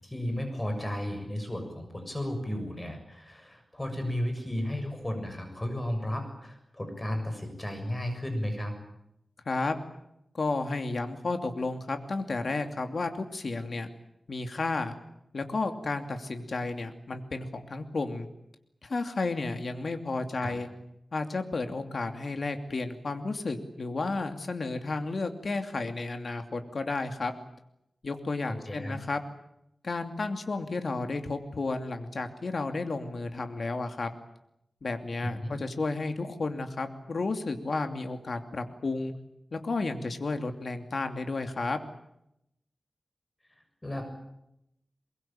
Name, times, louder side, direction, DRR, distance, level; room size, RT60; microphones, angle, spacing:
voice 1, 0.0-8.7 20.3-20.5 28.7-29.0 35.2-35.5 43.8-44.0, left 1 dB, 20° left, 6 dB, 6.9 m, -34 dB
voice 2, 10.3-13.9 14.3-14.9 15.3-18.3 18.8-20.7 21.1-27.3 28.0-29.2 29.8-34.1 34.8-39.1 39.5-41.8, left 3 dB, 60° left, 6 dB, 2.7 m, -32 dB
23.0 x 22.5 x 8.9 m, 0.82 s
wide cardioid pair, 85°, 0 cm